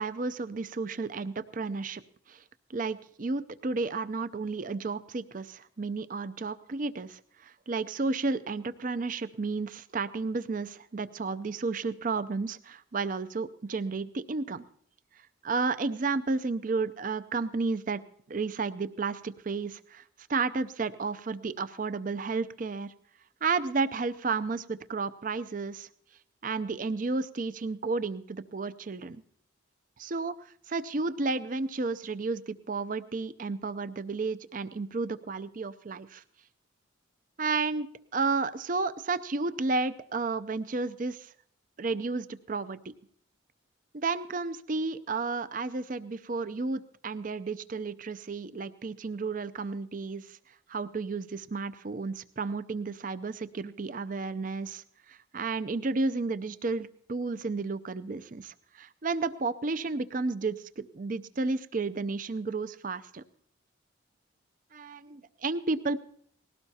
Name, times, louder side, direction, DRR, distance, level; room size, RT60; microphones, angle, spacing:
voice 1, 0.0-2.0 2.3-2.4 2.7-14.6 15.4-18.0 18.3-20.0 20.3-22.9 23.4-25.9 26.4-29.2 30.0-36.2 37.4-41.3 41.8-42.9 43.9-50.4 50.7-63.2 64.7-66.0, right 3 dB, 40° right, 14 dB, 0.5 m, -32 dB
20.0 x 17.0 x 2.8 m, 0.63 s
head